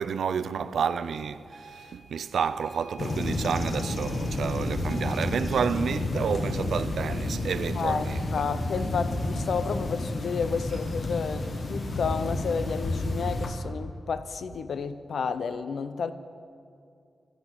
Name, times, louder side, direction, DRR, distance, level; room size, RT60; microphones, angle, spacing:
voice 1, 0.0-8.3, right 7 dB, 80° right, 0.5 m, -30 dB
sound 1, 1.5-5.4, right 3 dB, 15° right, 4.0 m, -49 dB
sound 2, 3.0-13.5, left 2 dB, 45° left, 1.3 m, -30 dB
voice 2, 7.8-16.1, left 5 dB, 70° left, 0.6 m, -31 dB
12.0 x 11.0 x 8.0 m
wide cardioid pair, 155°, 0 cm